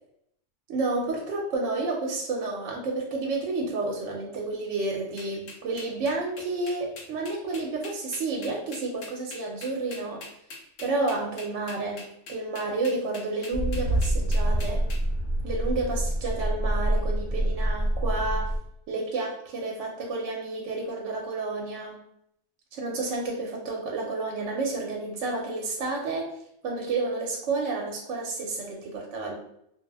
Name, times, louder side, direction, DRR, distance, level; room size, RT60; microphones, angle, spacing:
voice 1, 0.7-10.2 10.8-14.8 15.4-18.5 18.9-22.0 22.7-26.3 26.6-29.4, right 3 dB, 75° right, 0 dB, 0.9 m, -30 dB
sound 1, 5.2-15.0, left 3 dB, 75° left, 1.0 m, -42 dB
sound 2, 13.5-18.6, right 1 dB, 50° left, 0.7 m, -26 dB
2.4 x 2.0 x 3.2 m, 0.74 s
omnidirectional pair, 1.3 m